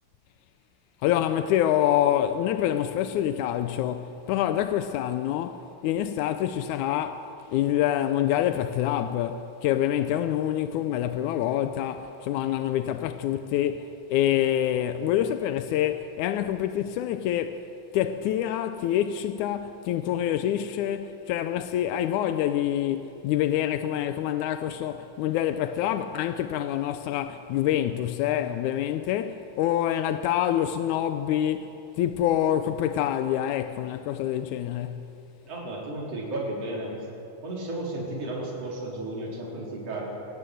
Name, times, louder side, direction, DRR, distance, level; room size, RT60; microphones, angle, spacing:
voice 1, 1.0-17.7 17.9-31.7 32.0-35.1, left 11 dB, 85° left, 2.1 m, -26 dB
voice 2, 35.4-36.9 37.4-40.1, right 2 dB, 55° right, 5.1 m, -33 dB
24.0 x 17.5 x 7.9 m
omnidirectional pair, 3.4 m